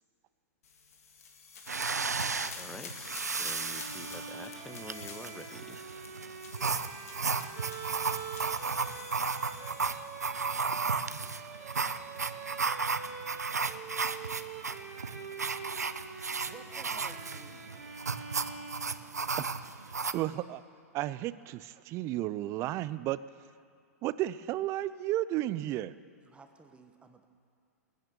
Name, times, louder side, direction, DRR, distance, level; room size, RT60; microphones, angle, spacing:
sound 1, 0.6-10.6, left 5 dB, 70° left, 2.1 m, -48 dB
sound 2, 1.7-20.1, right 5 dB, 85° right, 0.6 m, -34 dB
voice 1, 2.4-5.8, left 2 dB, 5° left, 9 dB, 0.9 m, -48 dB
Bowed string instrument, 3.4-19.4, right 6 dB, 50° right, 3.1 m, -45 dB
voice 2, 16.4-17.8 26.2-27.3, right 4 dB, 15° right, 7 dB, 1.3 m, -55 dB
voice 3, 19.7-20.6 20.9-23.2 24.0-25.9, right 15 dB, 35° right, 17 dB, 0.5 m, -33 dB
20.5 x 9.3 x 7.0 m, 2.3 s
figure-of-eight pair, 105°, 9 cm